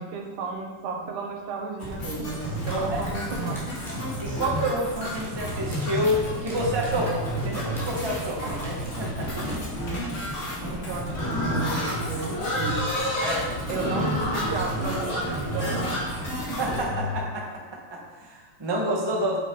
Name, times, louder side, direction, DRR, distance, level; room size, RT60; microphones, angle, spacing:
voice 1, 0.0-3.6 10.6-12.9 13.7-16.6, right 4 dB, 85° right, 1 dB, 2.7 m, -33 dB
sound 1, 1.8-16.8, equal, 30° left, 1.8 m, -31 dB
sound 2, 2.4-9.6, right 1 dB, ahead, 1.9 m, -44 dB
voice 2, 2.7-3.0 4.2-9.5 13.2-13.5 16.6-17.5 17.9-19.4, equal, 30° right, -3 dB, 0.4 m, -28 dB
Livestock farm animals working animals, 11.1-17.2, left 1 dB, 65° left, 4.2 m, -30 dB
9.0 x 6.8 x 3.9 m, 1.3 s
omnidirectional pair, 3.5 m